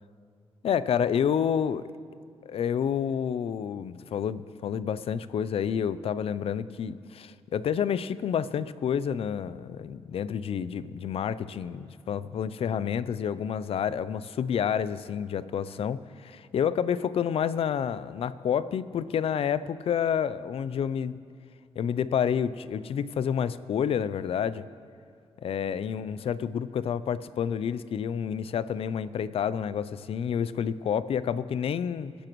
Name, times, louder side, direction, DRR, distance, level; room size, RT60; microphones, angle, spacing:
voice 1, 0.6-1.9 2.5-21.2 21.8-24.6 25.4-32.2, left 8 dB, 65° left, 16 dB, 0.4 m, -29 dB
24.0 x 10.0 x 3.1 m, 2.3 s
cardioid pair, 105°, 11 cm